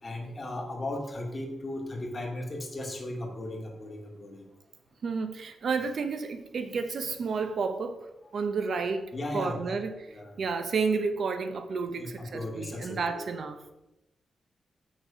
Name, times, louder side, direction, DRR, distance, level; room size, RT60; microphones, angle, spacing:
voice 1, 0.0-4.4 9.1-9.8 10.1-10.3 12.0-13.2, left 1 dB, 25° left, 2.1 m, -36 dB
voice 2, 5.0-8.0 8.3-13.6, right 4 dB, 55° right, 0.7 m, -31 dB
7.9 x 6.4 x 5.0 m
wide cardioid pair, 130°, 0 cm